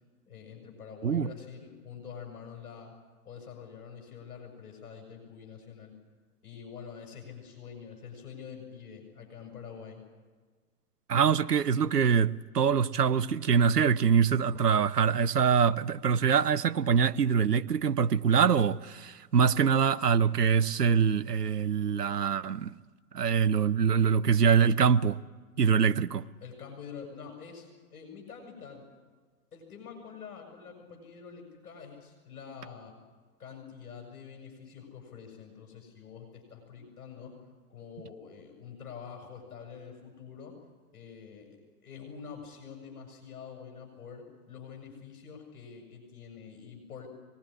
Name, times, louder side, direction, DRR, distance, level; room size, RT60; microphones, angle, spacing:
voice 1, 0.3-2.9 3.2-5.9 6.4-10.0 26.4-28.9 29.5-33.0 33.4-40.5 40.9-41.5 41.8-47.1, left 6 dB, 70° left, 7.1 m, -46 dB
voice 2, 11.1-22.7 23.1-25.2 25.6-26.3, right 7 dB, 85° right, 0.9 m, -24 dB
25.0 x 19.5 x 10.0 m
figure-of-eight pair, 110°, 46 cm